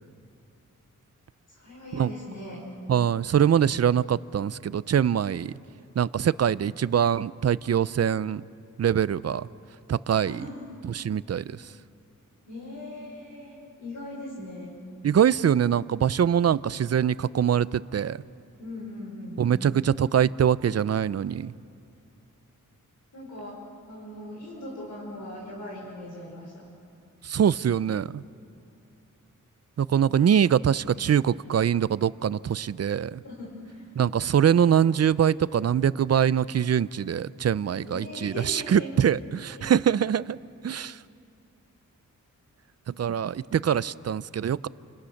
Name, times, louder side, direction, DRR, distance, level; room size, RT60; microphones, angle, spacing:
voice 1, 1.5-2.6 10.2-10.6 12.5-14.8 18.6-19.4 23.1-23.6 23.9-26.6 33.2-33.9 37.8-38.9 39.5-39.7, left 1 dB, 70° left, -4 dB, 6.0 m, -39 dB
voice 2, 2.9-5.5 6.0-8.4 8.8-9.5 9.9-10.5 10.8-11.7 15.0-18.2 19.4-21.5 27.2-28.2 29.8-33.2 34.0-40.4 40.6-41.0 42.9-44.7, right 8 dB, 50° right, 18 dB, 0.6 m, -23 dB
30.0 x 25.5 x 6.5 m, 2.6 s
wide cardioid pair, 100°, 32 cm